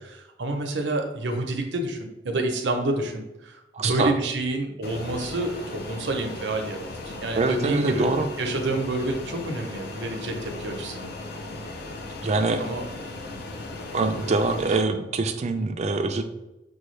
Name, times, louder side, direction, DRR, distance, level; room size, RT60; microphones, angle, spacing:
voice 1, 0.4-8.1 8.4-11.1 12.6-12.8 14.2-14.4, right 2 dB, 80° right, 4 dB, 0.7 m, -28 dB
voice 2, 3.7-4.1 7.4-8.3 12.2-12.6 13.9-16.2, right 3 dB, 40° right, 7 dB, 0.4 m, -24 dB
Fixed-wing aircraft airplane, 4.8-14.8, left 2 dB, 60° left, 0.5 m, -37 dB
6.3 x 2.3 x 3.1 m, 0.94 s
head